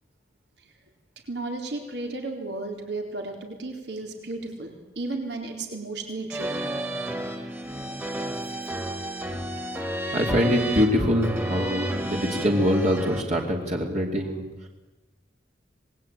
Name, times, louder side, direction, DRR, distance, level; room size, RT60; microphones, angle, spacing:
voice 1, 1.3-6.7, right 2 dB, 70° right, 3 dB, 4.0 m, -34 dB
sound 1, 6.3-13.2, right 1 dB, 10° right, 2.4 m, -31 dB
voice 2, 10.1-14.7, equal, 40° right, 0 dB, 2.7 m, -24 dB
26.0 x 20.5 x 8.9 m, 1.1 s
head